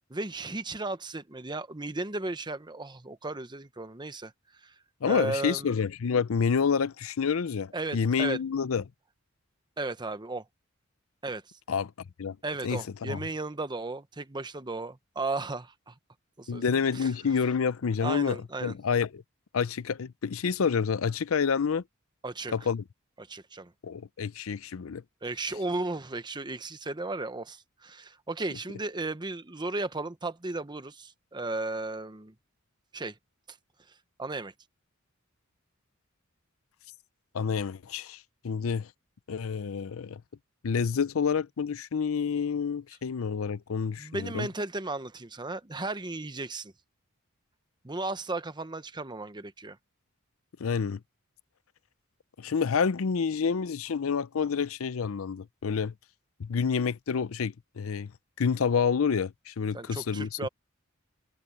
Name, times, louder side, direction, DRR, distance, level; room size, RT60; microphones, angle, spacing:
voice 1, 0.1-4.3 4.6-4.7 5.1-5.7 7.7-8.4 9.8-10.4 11.2-11.4 12.4-15.9 16.4-16.6 16.9-17.1 18.0-18.7 22.2-22.5 23.2-23.7 25.2-32.3 32.9-33.1 33.5-33.6 34.2-34.5 44.0-46.7 47.8-49.8 59.7-60.5, right 2 dB, 20° right, 1.0 m, -35 dB
voice 2, 5.0-8.8 11.7-11.9 12.2-12.4 12.6-13.2 16.5-19.2 19.5-21.8 22.5-22.8 23.8-25.0 37.3-38.9 39.3-40.2 40.6-44.5 50.6-51.0 52.4-55.9 56.4-58.1 58.4-60.5, left 6 dB, 85° left, 0.5 m, -28 dB
head